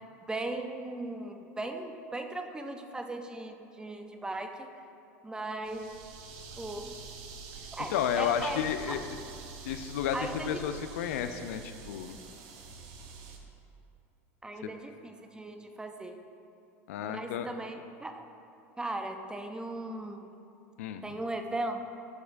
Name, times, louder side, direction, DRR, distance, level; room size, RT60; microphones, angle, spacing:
voice 1, 0.3-4.7 5.2-5.9 6.6-7.0 7.7-8.6 10.1-10.6 14.4-16.2 17.0-18.2 18.8-20.3 21.0-21.9, right 2 dB, 10° right, 6 dB, 0.5 m, -38 dB
sound 1, 5.6-13.4, right 5 dB, 65° right, 0.8 m, -46 dB
voice 2, 7.9-9.2 9.7-12.2 16.9-17.5 20.8-21.0, left 9 dB, 80° left, 9 dB, 0.4 m, -32 dB
10.5 x 5.0 x 2.6 m, 2.9 s
hypercardioid pair, 90°, 8 cm